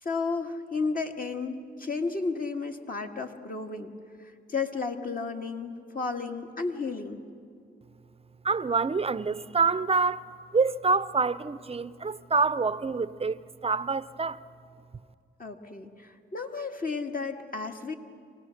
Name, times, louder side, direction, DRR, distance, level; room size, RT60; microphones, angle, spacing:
voice 1, 0.0-3.9 4.2-7.2 15.4-17.9, left 4 dB, 45° left, 1.8 m, -33 dB
voice 2, 8.4-10.3 10.5-14.4, right 4 dB, 30° right, 0.6 m, -26 dB
24.5 x 18.0 x 6.5 m
cardioid pair, 55°, 20 cm